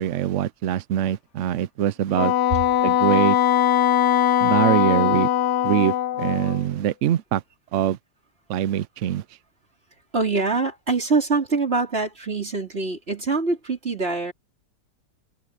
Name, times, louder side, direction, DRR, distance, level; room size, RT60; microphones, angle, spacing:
voice 1, 0.0-2.3 2.8-3.4 4.4-5.3 5.6-7.4 7.7-8.0 8.5-9.2, right 11 dB, 70° right, 0.7 m, -23 dB
Wind instrument woodwind instrument, 2.1-6.6, left 11 dB, 75° left, 1.5 m, -20 dB
voice 2, 10.1-14.3, right 3 dB, 35° right, 4.0 m, -24 dB
omnidirectional pair, 1.8 m